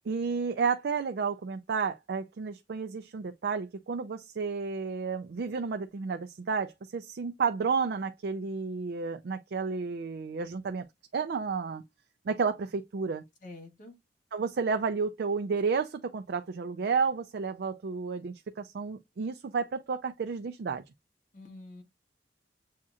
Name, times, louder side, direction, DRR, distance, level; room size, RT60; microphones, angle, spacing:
voice 1, 0.1-10.9 11.1-11.8 12.3-13.2 14.3-20.8, right 5 dB, 65° right, 0.4 m, -31 dB
voice 2, 13.4-14.0 21.3-21.8, left 2 dB, 50° left, 1.8 m, -47 dB
7.3 x 2.8 x 2.3 m
head